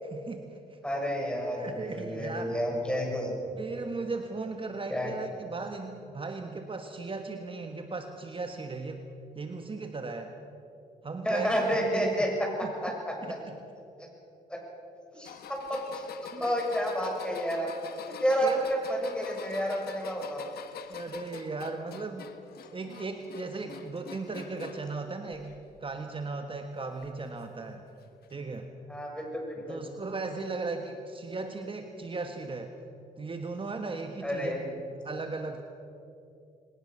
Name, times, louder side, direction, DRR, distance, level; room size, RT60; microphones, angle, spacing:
voice 1, 0.0-0.8 1.6-2.6 3.5-9.1 9.3-10.3 11.0-12.3 12.6-12.7 13.2-13.6 15.1-15.3 16.3-16.5 18.4-18.7 20.9-22.3 22.7-25.5 25.8-27.8 28.3-28.7 29.7-32.7 33.2-35.6, right 3 dB, 35° right, 5 dB, 1.5 m, -37 dB
voice 2, 0.8-3.3 4.9-5.1 11.2-13.4 14.0-14.1 14.5-14.6 15.1-16.1 16.4-17.7 18.2-20.5 28.9-29.8 34.2-34.6, equal, 5° left, 0 dB, 6.8 m, -30 dB
sound 1, 15.2-24.9 25.3-25.9 27.0-27.1 28.2-28.3, left 7 dB, 80° left, 1.4 m, -44 dB
21.5 x 19.0 x 6.8 m, 2.7 s
cardioid pair, 75°, 16 cm